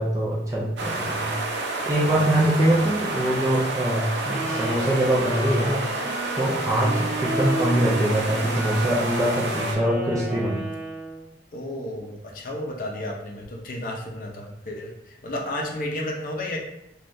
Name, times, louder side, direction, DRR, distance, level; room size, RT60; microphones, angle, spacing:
voice 1, 0.0-1.4 1.9-5.8 6.4-10.7, right 1 dB, 20° right, -6 dB, 0.4 m, -23 dB
sound 1, 0.8-9.8, right 2 dB, 90° right, 0.5 m, -30 dB
voice 2, 2.0-3.0 6.8-7.1 11.5-16.6, left 1 dB, 50° left, 0 dB, 0.5 m, -33 dB
Wind instrument woodwind instrument, 4.3-11.2, right 1 dB, 70° right, 0.8 m, -32 dB
3.4 x 2.3 x 2.6 m, 0.82 s
head